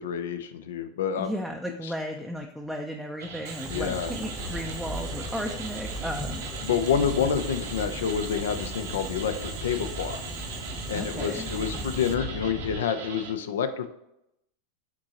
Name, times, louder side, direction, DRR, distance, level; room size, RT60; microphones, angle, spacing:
voice 1, 0.0-1.3 1.8-1.9 3.7-4.1 6.6-10.2 10.9-13.9, left 7 dB, 80° left, 10 dB, 0.5 m, -28 dB
voice 2, 1.1-6.4 10.9-11.5, equal, ahead, 2 dB, 0.4 m, -34 dB
sound 1, 3.2-13.3, right 5 dB, 80° right, 0.9 m, -40 dB
Boiling, 3.5-12.1, right 9 dB, 50° right, 0.5 m, -43 dB
sound 2, 3.6-12.8, left 1 dB, 20° left, 0.9 m, -37 dB
6.0 x 2.9 x 2.9 m, 0.83 s
hypercardioid pair, 110°, 0 cm